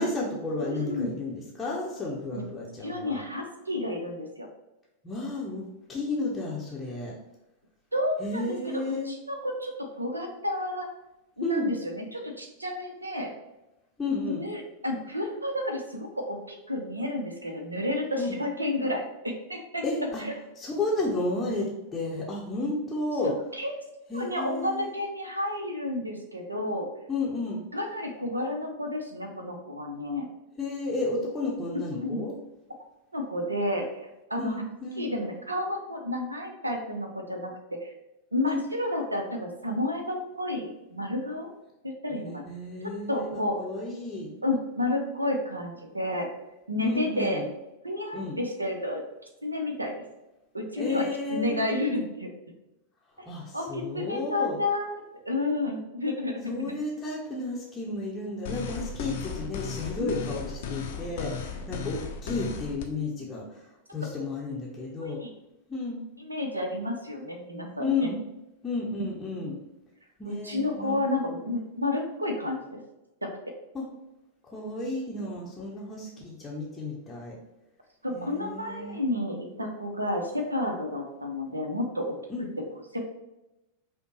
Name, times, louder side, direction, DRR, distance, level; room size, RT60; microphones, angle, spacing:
voice 1, 0.0-3.2 5.0-7.2 8.2-9.1 11.4-11.8 14.0-14.4 18.1-18.4 19.8-20.2 20.6-23.3 24.1-24.9 27.1-27.6 30.6-32.4 34.4-35.1 38.4-38.6 42.1-44.3 46.8-47.5 48.1-48.4 50.8-51.6 53.3-54.6 56.5-65.2 65.7-66.0 67.8-68.2 68.6-69.6 70.2-71.0 73.7-73.9 74.5-77.4 78.1-79.0 82.3-82.5, left 2 dB, 15° left, -5 dB, 0.7 m, -32 dB
voice 2, 0.6-1.2 2.3-2.4 2.8-4.5 7.9-9.7 10.0-10.9 11.4-13.3 14.4-19.8 20.2-20.3 23.6-23.7 24.1-26.9 27.7-30.3 31.9-32.2 33.1-33.9 34.3-34.5 35.0-37.5 37.8-37.9 38.3-41.5 42.0-42.4 43.1-43.6 44.4-46.3 46.7-47.4 47.8-49.0 49.4-50.0 50.5-52.3 53.5-54.9 55.2-56.4 60.0-60.3 65.0-65.3 66.2-68.1 69.0-69.1 69.4-69.5 70.3-72.6 73.2-73.3 78.0-82.0 82.9-83.0, left 1 dB, 80° right, 3 dB, 0.6 m, -31 dB
sound 1, 58.5-62.9, left 6 dB, 55° left, 0.5 m, -35 dB
5.1 x 2.2 x 3.0 m, 0.93 s
figure-of-eight pair, 90°, 0 cm